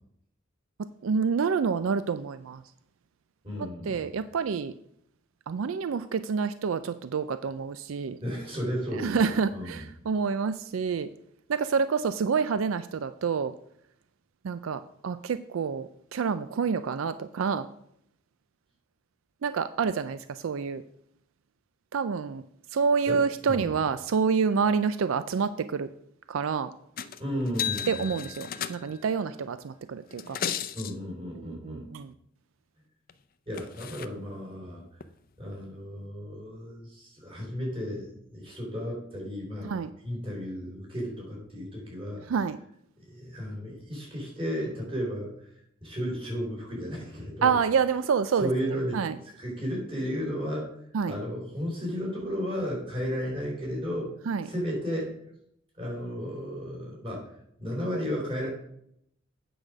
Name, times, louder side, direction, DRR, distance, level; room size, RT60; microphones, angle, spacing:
voice 1, 1.0-2.6 3.9-4.7 5.5-8.2 9.0-11.1 11.5-13.5 14.4-17.7 19.4-20.8 21.9-22.4 22.7-25.9 26.3-26.7 27.9-30.4 31.4-32.1 39.6-39.9 42.3-42.6 47.4-48.5 48.9-49.2 50.9-51.1 54.3-54.5, right 6 dB, 80° right, 12 dB, 0.4 m, -28 dB
voice 2, 3.4-4.1 8.2-9.2 9.5-9.8 23.1-23.2 23.5-23.7 27.2-28.0 30.7-31.9 33.5-34.8 35.4-39.8 40.0-42.2 43.0-45.3 45.8-47.5 48.4-49.0 49.4-50.7 51.1-54.1 54.4-55.1 55.7-57.3 57.6-58.5, equal, 25° right, -2 dB, 3.7 m, -33 dB
sound 1, 27.0-27.2 27.5-29.1 30.1-30.9 33.1-33.2 33.5-34.1 35.0-35.1, left 8 dB, 45° left, 0.5 m, -34 dB
8.7 x 4.9 x 6.1 m, 0.71 s
head